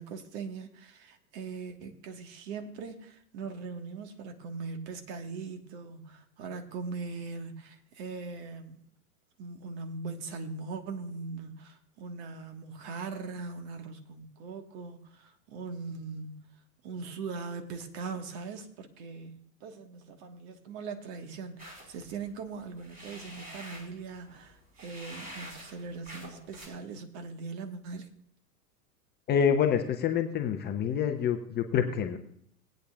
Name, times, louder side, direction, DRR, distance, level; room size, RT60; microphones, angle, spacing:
voice 1, 0.0-8.8 9.4-16.4 16.8-28.1, right 4 dB, 45° right, 1.5 m, -40 dB
sound 1, 21.6-26.7, equal, 15° right, 4.0 m, -47 dB
voice 2, 29.3-32.2, left 8 dB, 20° left, 0.7 m, -27 dB
19.5 x 8.9 x 2.4 m
figure-of-eight pair, 100°, 47 cm